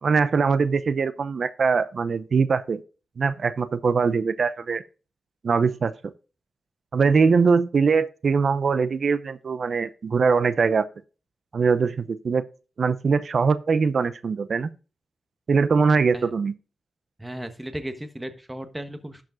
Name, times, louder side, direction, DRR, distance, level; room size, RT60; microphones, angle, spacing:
voice 1, 0.0-2.8 3.2-4.8 5.4-5.9 6.9-10.9 11.5-12.4 12.8-14.7 15.5-16.5, right 5 dB, 55° right, 0.6 m, -22 dB
voice 2, 17.2-19.2, right 1 dB, 10° right, 1.3 m, -35 dB
12.0 x 5.1 x 3.9 m
cardioid pair, 75°, 0 cm